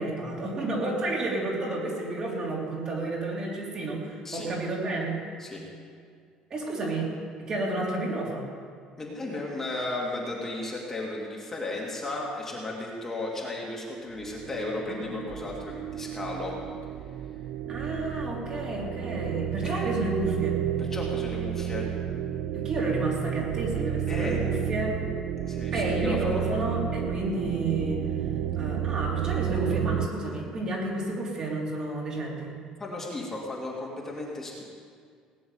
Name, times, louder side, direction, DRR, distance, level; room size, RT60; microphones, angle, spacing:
voice 1, 0.0-5.2 6.5-7.1 7.4-8.5 14.9-15.2 17.7-20.6 22.5-25.0 25.7-28.0 28.6-32.5, right 2 dB, 35° right, -3 dB, 3.6 m, -31 dB
voice 2, 9.0-16.5 19.6-19.9 20.8-21.9 24.1-24.4 25.5-26.4 32.8-34.6, left 2 dB, 15° left, -3 dB, 2.5 m, -35 dB
sound 1, 14.2-30.1, right 10 dB, 75° right, 0.6 m, -31 dB
19.0 x 7.0 x 9.6 m, 2.1 s
cardioid pair, 145°, 2 cm